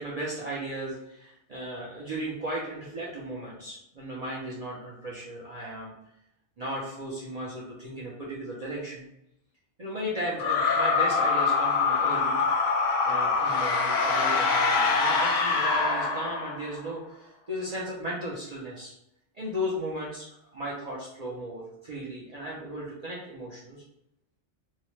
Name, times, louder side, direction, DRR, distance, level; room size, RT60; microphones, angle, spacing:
voice 1, 0.0-5.9 6.6-9.1 9.8-12.4 13.0-18.9 19.3-23.8, equal, 45° right, -6 dB, 0.5 m, -36 dB
sound 1, 10.4-16.8, left 4 dB, 90° left, 0.9 m, -24 dB
2.8 x 2.1 x 3.0 m, 0.81 s
omnidirectional pair, 1.2 m